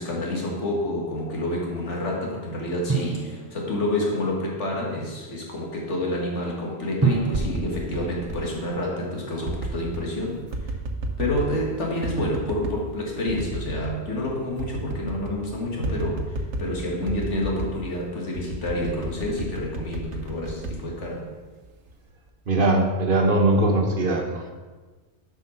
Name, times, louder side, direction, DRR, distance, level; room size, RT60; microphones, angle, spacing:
voice 1, 0.0-10.8 11.2-16.3 16.6-21.3, left 1 dB, 85° left, -2 dB, 2.1 m, -28 dB
Drum, 2.9-4.4 7.0-9.2, right 5 dB, 15° right, 0.6 m, -29 dB
sound 1, 7.1-8.4 9.4-10.1 10.5-11.6 12.0-12.8 13.3-14.0 14.3-14.4 14.6-15.4 15.8-16.7 17.1-17.8 18.3-21.5 21.9-22.3, right 2 dB, 75° right, 1.2 m, -32 dB
voice 2, 22.5-24.5, right 2 dB, 50° right, 3 dB, 1.2 m, -21 dB
7.7 x 5.8 x 5.7 m, 1.3 s
omnidirectional pair, 1.2 m